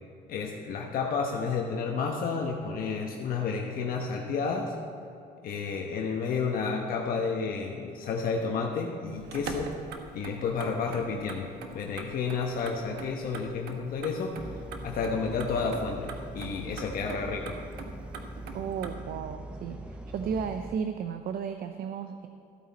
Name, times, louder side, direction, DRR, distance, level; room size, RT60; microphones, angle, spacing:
voice 1, 0.3-4.7 5.4-9.7 10.1-14.3 14.8-17.6, left 5 dB, 60° left, 0 dB, 1.0 m, -31 dB
Motor vehicle (road), 9.1-18.9, right 5 dB, 80° right, 1.0 m, -44 dB
sound 1, 14.4-20.8, right 1 dB, 5° right, 0.7 m, -42 dB
voice 2, 18.5-22.3, right 7 dB, 60° right, 8 dB, 0.6 m, -34 dB
14.0 x 8.5 x 4.1 m, 2.6 s
cardioid pair, 110°, 17 cm